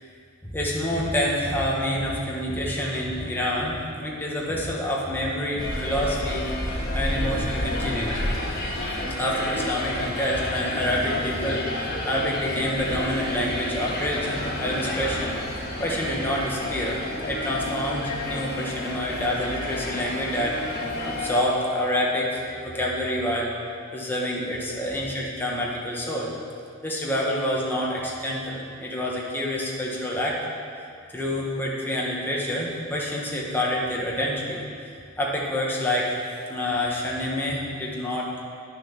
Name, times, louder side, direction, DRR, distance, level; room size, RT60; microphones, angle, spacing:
voice 1, 0.4-8.3 9.2-15.3 15.8-17.0 17.2-20.6 21.0-23.5 23.9-26.3 26.8-30.4 31.1-34.6 35.2-36.2 36.5-38.3, left 1 dB, 10° left, -4 dB, 1.5 m, -27 dB
sound 1, 5.6-21.4, left 1 dB, 50° left, 1.6 m, -30 dB
9.6 x 7.1 x 6.1 m, 2.4 s
head